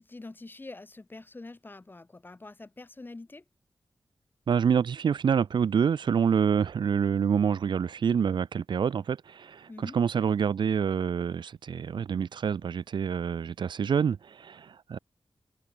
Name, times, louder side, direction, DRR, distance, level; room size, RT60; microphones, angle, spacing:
voice 1, 0.0-3.4 9.7-10.0, left 2 dB, 25° left, 3.9 m, -45 dB
voice 2, 4.5-15.0, right 7 dB, 85° right, 0.9 m, -27 dB
wide cardioid pair, 125°, 8 cm